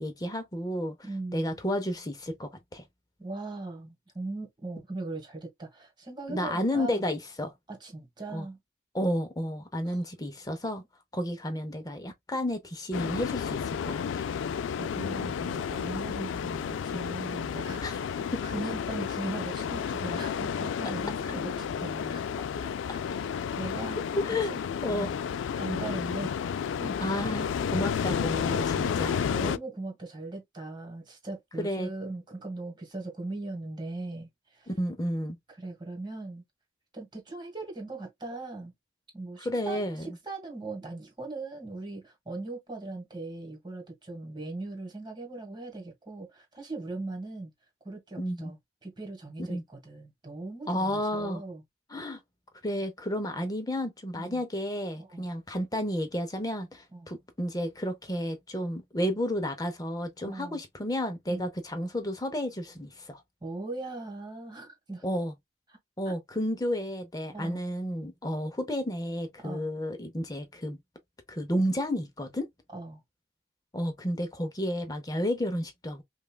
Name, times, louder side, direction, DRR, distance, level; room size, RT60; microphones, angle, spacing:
voice 1, 0.0-1.0 1.3-2.8 6.3-7.5 8.3-8.5 8.9-10.8 11.1-14.3 17.8-18.0 18.3-18.4 24.2-24.5 24.8-25.1 27.0-29.2 31.6-31.9 34.7-35.4 39.4-40.1 48.2-48.5 49.5-49.6 50.7-51.4 51.9-52.2 52.6-63.2 65.0-65.3 66.0-70.8 71.3-72.5 73.7-76.0, equal, 20° left, 0.6 m, -31 dB
voice 2, 1.0-1.6 3.2-7.1 7.7-8.6 9.8-10.0 14.8-18.1 18.4-22.3 22.6-23.0 23.5-24.0 24.4-25.1 25.5-26.3 26.7-27.0 28.7-34.7 35.6-36.4 36.9-38.7 39.1-47.5 47.8-51.6 54.1-54.4 55.0-55.3 56.9-57.1 60.2-60.6 61.3-61.5 63.4-65.0 66.0-66.1 67.3-67.6 69.4-69.7 72.7-73.0, right 2 dB, 20° right, 1.5 m, -39 dB
sound 1, 12.9-29.6, left 7 dB, 75° left, 0.3 m, -31 dB
5.3 x 2.3 x 2.2 m
head